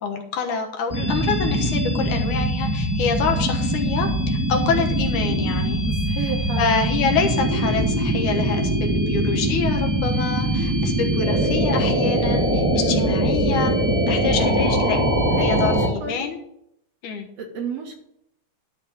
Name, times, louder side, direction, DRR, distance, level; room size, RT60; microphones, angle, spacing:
voice 1, 0.0-5.8 6.2-6.3 6.6-13.8 14.1-15.0 15.4-16.4 17.0-17.3, left 5 dB, 75° left, 3 dB, 2.6 m, -26 dB
sound 1, 0.9-15.9, right 1 dB, 30° right, 0.3 m, -22 dB
voice 2, 6.0-6.8 12.7-13.3 15.3-16.2 17.4-18.0, right 5 dB, 60° right, 2 dB, 2.2 m, -31 dB
12.0 x 4.1 x 7.4 m, 0.77 s
omnidirectional pair, 3.7 m